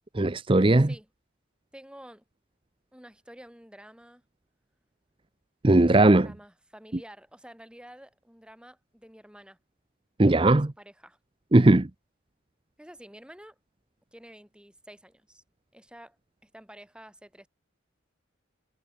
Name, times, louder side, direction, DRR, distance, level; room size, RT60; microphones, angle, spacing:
voice 1, 0.1-0.9 5.6-6.3 10.2-10.7 11.5-11.9, right 2 dB, 25° right, 0.6 m, -18 dB
voice 2, 0.8-1.1 1.7-2.2 2.9-4.2 6.1-9.6 10.5-11.2 12.8-13.6 14.1-15.4 15.7-16.2 16.4-17.5, equal, 5° right, 5.7 m, -50 dB
head